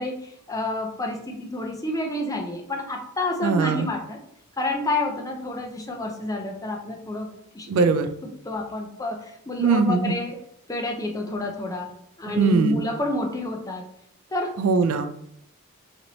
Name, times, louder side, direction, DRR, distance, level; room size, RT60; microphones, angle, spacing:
voice 1, 0.0-4.2 4.6-7.7 8.4-10.4 10.7-11.9 12.2-13.8 14.3-14.6, left 2 dB, 15° left, 2 dB, 0.5 m, -29 dB
voice 2, 3.4-3.9 7.7-8.1 9.6-10.2 12.4-12.8 14.6-15.1, right 4 dB, 75° right, 10 dB, 0.4 m, -21 dB
4.2 x 3.0 x 2.6 m, 0.72 s
head